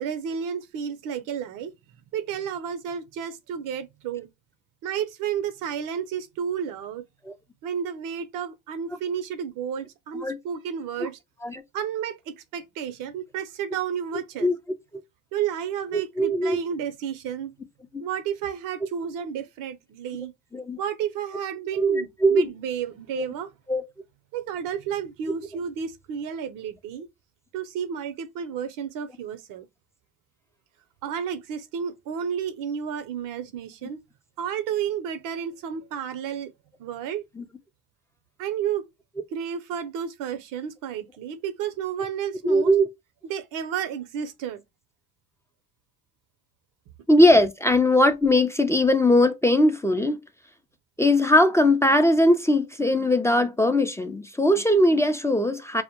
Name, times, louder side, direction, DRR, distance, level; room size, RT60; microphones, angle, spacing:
voice 1, 0.0-1.7 2.1-4.3 4.8-7.0 7.6-11.2 11.7-14.5 15.3-17.5 18.0-20.3 20.8-23.5 24.3-27.1 27.5-29.7 31.0-34.0 34.4-36.5 36.8-37.2 38.4-38.9 39.3-42.7 43.2-44.6, right 8 dB, 75° right, 0.6 m, -31 dB
voice 2, 15.9-16.6 20.5-20.8 21.7-22.5 23.7-23.8 37.4-37.5 42.4-42.9 47.1-50.2 51.0-55.8, left 1 dB, 10° left, 0.3 m, -20 dB
2.1 x 2.0 x 2.9 m
supercardioid pair, 65°, 32 cm